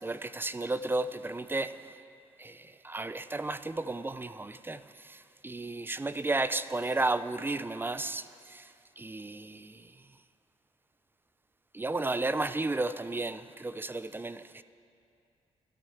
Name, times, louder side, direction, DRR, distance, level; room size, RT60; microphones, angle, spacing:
voice 1, 0.0-1.7 2.4-8.7 9.0-9.9 11.7-14.6, right 2 dB, 20° right, 0.4 m, -33 dB
12.5 x 12.5 x 4.5 m
cardioid pair, 60°, 11 cm